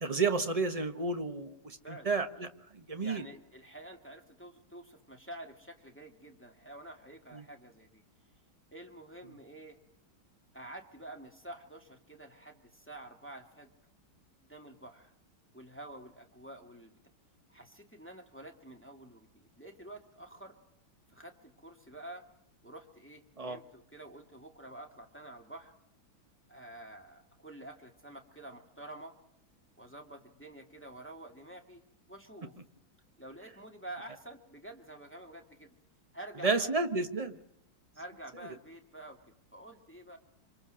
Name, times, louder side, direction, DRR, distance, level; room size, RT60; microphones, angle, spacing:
voice 1, 0.0-2.5 2.7-3.2 7.3-7.4 23.4-23.6 36.4-37.4, right 4 dB, 20° right, 8 dB, 1.2 m, -31 dB
voice 2, 1.8-2.1 3.0-8.0 8.7-9.8 10.5-13.7 14.4-15.1 15.5-17.0 17.5-20.6 21.1-22.2 22.6-25.7 26.5-29.2 29.8-31.8 32.1-32.5 33.2-35.7 36.1-36.7 37.9-39.2 39.5-40.2, right 1 dB, 5° left, 4 dB, 2.0 m, -48 dB
26.0 x 26.0 x 6.4 m, 0.79 s
omnidirectional pair, 2.2 m